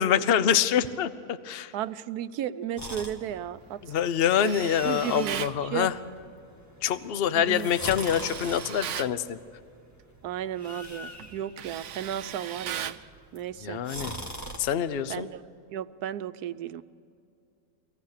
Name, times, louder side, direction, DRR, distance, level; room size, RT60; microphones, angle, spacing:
voice 1, 0.0-1.7 3.8-6.0 6.8-9.4 13.6-14.1 14.6-15.3, left 9 dB, 50° left, 13 dB, 0.8 m, -25 dB
voice 2, 1.7-3.8 4.4-4.5 4.8-5.9 7.3-7.7 10.2-13.0 13.3-13.8 15.1-15.4 15.7-16.8, right 10 dB, 80° right, 13 dB, 1.2 m, -34 dB
sound 1, 2.8-14.6, equal, 10° left, 1.6 m, -43 dB
Tools, 4.3-5.6 7.8-9.1 10.6-10.9 11.2-13.1, right 9 dB, 60° right, 0.9 m, -37 dB
24.5 x 17.5 x 6.7 m, 2.5 s
omnidirectional pair, 1.7 m